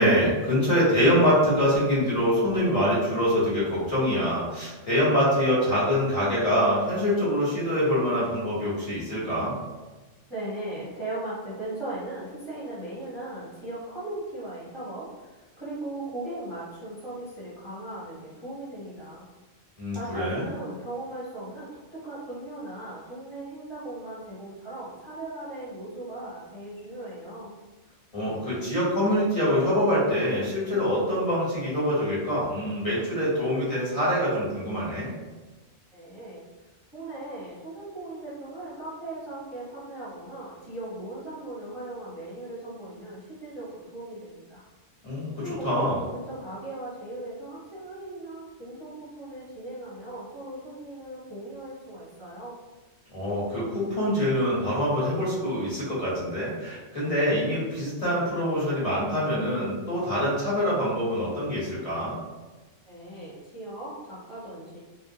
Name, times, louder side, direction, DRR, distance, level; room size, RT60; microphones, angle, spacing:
voice 1, 0.0-9.6 19.8-20.5 28.1-35.1 45.0-45.3 45.6-46.0 53.1-62.1, equal, 30° left, -9 dB, 1.1 m, -25 dB
voice 2, 10.3-19.3 19.9-27.5 35.9-36.4 36.9-44.6 45.4-52.6 62.9-64.8, right 2 dB, 30° right, -10 dB, 0.7 m, -38 dB
3.7 x 2.1 x 2.7 m, 1.2 s
omnidirectional pair, 1.2 m